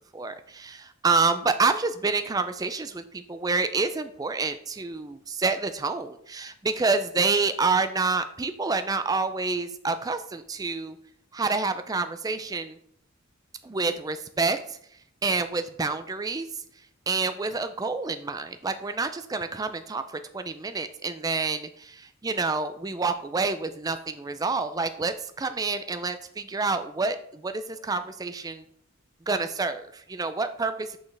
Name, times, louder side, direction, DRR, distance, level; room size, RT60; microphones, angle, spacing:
voice 1, 0.1-11.0 11.3-12.8 13.6-14.8 15.2-16.5 17.1-20.0 20.3-28.6 29.3-31.0, right 4 dB, 15° right, 10 dB, 0.3 m, -28 dB
6.3 x 5.9 x 3.3 m, 0.66 s
head